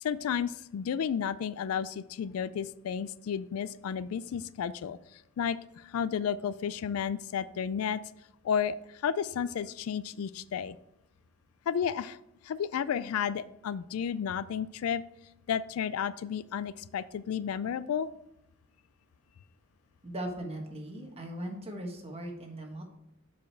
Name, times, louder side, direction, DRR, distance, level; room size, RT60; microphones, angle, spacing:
voice 1, 0.0-5.0 5.4-8.0 8.4-10.8 11.7-12.2 12.4-15.0 15.5-18.1, left 7 dB, 80° left, 16 dB, 0.3 m, -32 dB
voice 2, 20.0-22.8, right 1 dB, 30° right, 2 dB, 1.3 m, -39 dB
7.1 x 5.0 x 4.5 m, 0.84 s
head